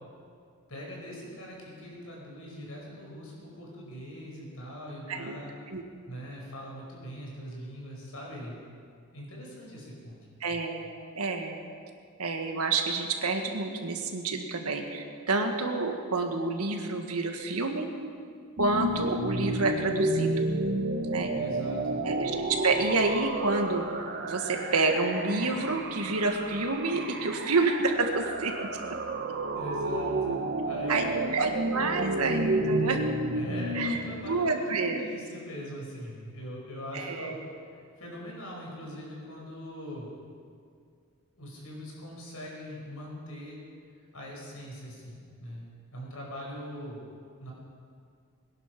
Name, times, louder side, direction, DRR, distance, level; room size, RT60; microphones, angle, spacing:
voice 1, 0.7-5.5 6.1-8.6 9.1-10.2 21.3-22.0 29.5-30.4 30.6-31.6 33.3-37.4 37.7-40.1 41.4-43.6 44.1-45.7 45.9-47.1 47.4-47.5, equal, 75° left, -2 dB, 5.3 m, -41 dB
voice 2, 10.4-10.8 11.1-11.6 12.2-17.9 18.6-20.5 21.0-21.3 22.0-23.9 24.2-28.7 30.9-31.0 31.3-33.0 33.7-35.0 36.9-37.3, right 3 dB, 85° right, 4 dB, 1.7 m, -28 dB
sound 1, 18.6-34.0, right 2 dB, 50° right, 1.2 m, -31 dB
21.0 x 11.0 x 6.0 m, 2.2 s
head